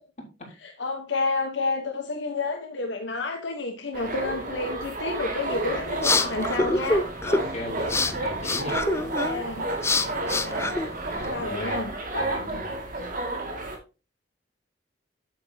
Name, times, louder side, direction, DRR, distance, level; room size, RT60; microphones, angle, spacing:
voice 1, 0.6-7.1 8.9-9.6 10.0-10.7 11.2-11.9, left 3 dB, 75° left, 3 dB, 1.2 m, -30 dB
Sea Lions, 3.9-13.8, right 2 dB, 50° right, 2.2 m, -31 dB
sound 1, 5.5-11.4, left 3 dB, 15° left, 0.5 m, -27 dB
voice 2, 7.2-8.8 11.1-11.8 12.1-12.7, left 1 dB, 40° left, -2 dB, 4.1 m, -37 dB
8.5 x 8.5 x 2.8 m, 0.30 s
head